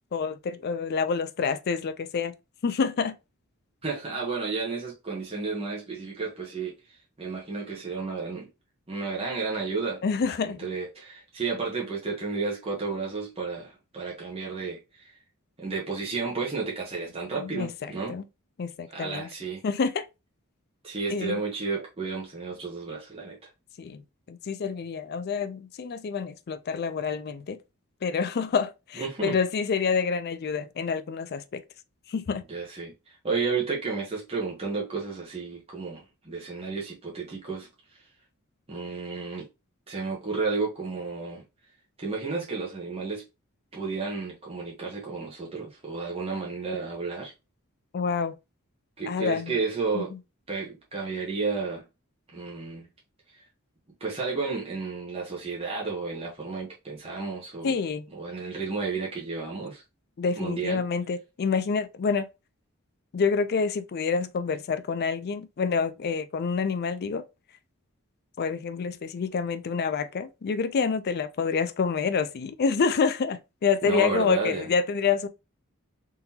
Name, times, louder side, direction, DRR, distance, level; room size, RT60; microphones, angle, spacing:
voice 1, 0.1-2.3 2.6-3.2 10.0-10.7 17.3-18.2 18.6-19.3 19.6-20.1 21.1-21.4 23.8-24.0 24.3-27.6 28.0-31.6 32.1-32.4 47.9-48.3 49.1-49.6 49.9-50.2 57.6-58.1 60.2-62.3 63.1-67.2 68.4-75.3, left 5 dB, 50° left, 0.4 m, -27 dB
voice 2, 3.8-8.5 8.9-10.0 10.4-15.2 15.6-18.2 18.9-19.6 20.8-23.5 29.0-29.4 32.5-37.7 38.7-39.5 39.9-41.4 42.0-43.2 43.7-47.3 49.0-50.1 50.5-51.8 52.3-52.9 53.3-53.4 54.0-57.8 58.1-59.8 60.4-60.8 73.8-74.7, right 4 dB, 25° right, 0.9 m, -32 dB
3.7 x 2.8 x 2.7 m
head